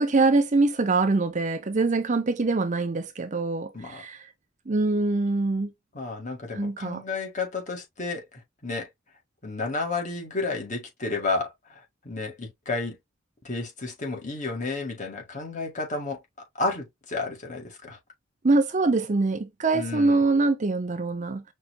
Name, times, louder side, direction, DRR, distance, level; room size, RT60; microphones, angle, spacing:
voice 1, 0.0-4.3 4.7-5.7 6.5-7.0 18.4-21.4, right 3 dB, 40° right, 0.6 m, -24 dB
voice 2, 5.9-8.9 9.4-13.0 13.4-16.2 16.6-18.0 19.7-20.2, left 3 dB, 40° left, 1.9 m, -32 dB
5.7 x 3.1 x 2.3 m
head